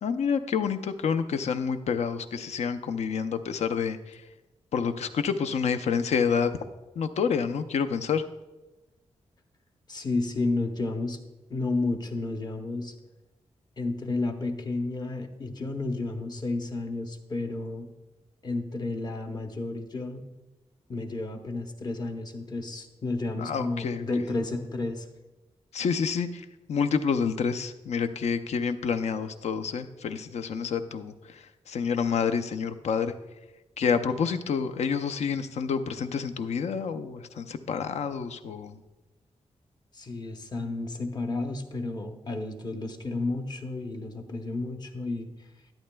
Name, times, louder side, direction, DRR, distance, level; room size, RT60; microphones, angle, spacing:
voice 1, 0.0-4.2 4.7-6.6 7.0-8.2 23.4-24.0 25.7-33.1 33.8-38.8, left 6 dB, 70° left, 9 dB, 0.5 m, -28 dB
voice 2, 9.9-11.2 11.5-12.9 13.8-17.9 18.4-20.2 20.9-25.1 39.9-45.3, left 2 dB, 35° left, 6 dB, 0.8 m, -31 dB
12.0 x 10.0 x 2.2 m, 1.1 s
wide cardioid pair, 140°, 12 cm